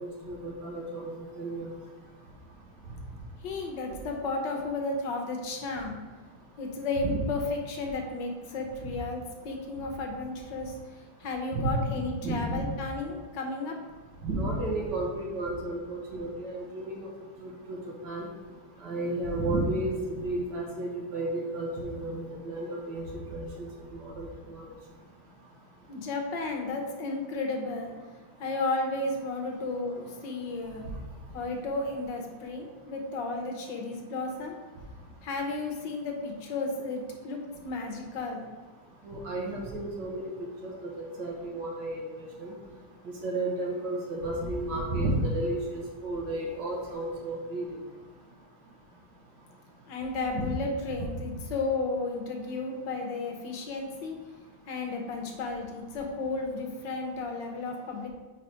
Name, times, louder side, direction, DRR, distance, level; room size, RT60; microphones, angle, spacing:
voice 1, 0.0-1.7 7.0-7.2 11.5-11.6 11.9-12.6 14.2-17.1 17.7-17.8 18.0-18.3 18.8-23.7 23.9-24.7 39.0-40.3 40.6-40.7 41.0-42.0 42.4-42.5 43.2-47.6 50.4-50.5, right 2 dB, 60° right, -2 dB, 1.6 m, -32 dB
voice 2, 3.4-5.9 6.6-13.8 25.9-27.9 28.4-30.8 31.3-34.6 35.2-38.4 49.9-54.2 54.7-58.1, left 3 dB, 65° left, 2 dB, 1.3 m, -33 dB
4.8 x 4.2 x 4.7 m, 1.4 s
omnidirectional pair, 2.4 m